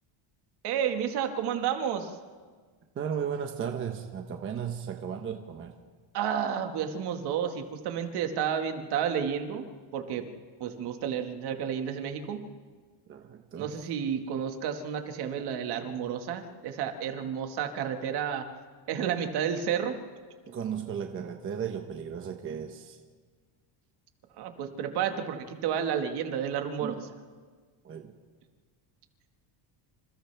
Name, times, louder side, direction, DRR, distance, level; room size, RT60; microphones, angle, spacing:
voice 1, 0.6-2.1 6.1-9.6 9.9-10.2 10.6-12.4 13.5-18.4 18.9-20.0 24.4-27.0, right 8 dB, 55° right, 5 dB, 1.9 m, -31 dB
voice 2, 2.9-5.7 13.1-13.7 20.5-23.0 26.8-27.1 27.8-28.1, right 7 dB, 25° right, 4 dB, 1.0 m, -35 dB
27.5 x 27.5 x 3.4 m, 1.5 s
cardioid pair, 175°, 47 cm